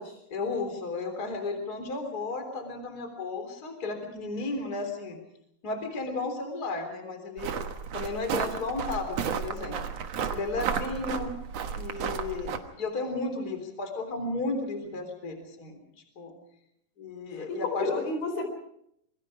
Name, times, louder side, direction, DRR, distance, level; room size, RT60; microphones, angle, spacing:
voice 1, 0.3-5.2 5.6-7.5 7.9-9.9 10.3-11.4 11.7-15.8 16.2-16.3 17.0-17.9, left 3 dB, 25° left, 5 dB, 3.8 m, -34 dB
sound 1, 7.4-12.6, right 7 dB, 55° right, 2.0 m, -33 dB
voice 2, 17.5-18.5, left 3 dB, 75° left, 5 dB, 6.2 m, -31 dB
27.5 x 22.0 x 5.0 m, 0.74 s
omnidirectional pair, 4.4 m